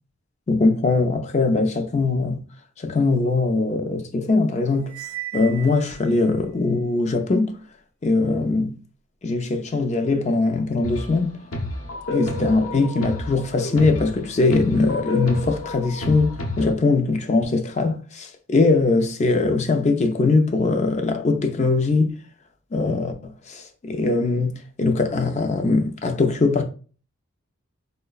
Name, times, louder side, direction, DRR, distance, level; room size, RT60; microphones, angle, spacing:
voice 1, 0.5-2.4 2.8-5.0 5.3-7.5 8.0-8.8 9.2-11.4 12.1-22.1 22.7-26.6, left 3 dB, 30° left, 0.4 m, -21 dB
Cymbal, 4.9-6.3, right 14 dB, 85° right, 0.4 m, -36 dB
sound 1, 10.8-11.2 11.5-16.7, left 2 dB, 75° left, 0.7 m, -30 dB
4.6 x 2.1 x 2.3 m
head